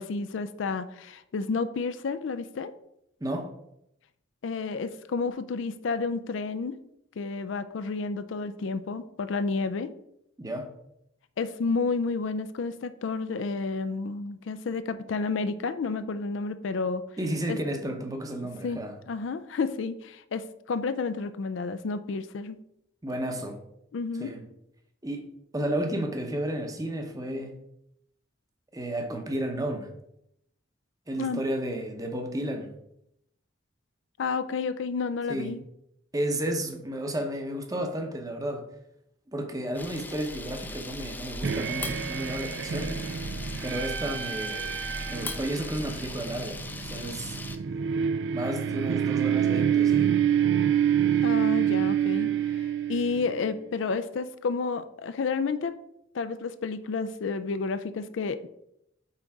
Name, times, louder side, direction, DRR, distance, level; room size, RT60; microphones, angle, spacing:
voice 1, 0.0-2.7 4.4-6.8 7.2-9.9 11.4-17.0 17.5-17.6 18.6-18.8 19.1-22.6 23.9-24.3 31.2-31.4 34.2-35.6 51.2-52.3 52.9-55.8 56.1-58.5, left 4 dB, 75° left, 0.4 m, -30 dB
voice 2, 3.2-3.5 10.4-10.7 17.2-18.9 23.0-23.6 24.2-24.4 25.0-25.3 25.5-27.5 28.7-29.9 31.1-32.7 35.3-35.5 36.1-38.7 39.3-42.9 43.6-44.7 45.1-47.4 48.3-50.1, right 1 dB, 20° right, 0.7 m, -32 dB
Camera, 39.7-47.6, left 2 dB, 10° left, 0.4 m, -38 dB
sound 1, 41.4-53.5, right 9 dB, 65° right, 0.4 m, -27 dB
5.7 x 3.9 x 4.7 m
head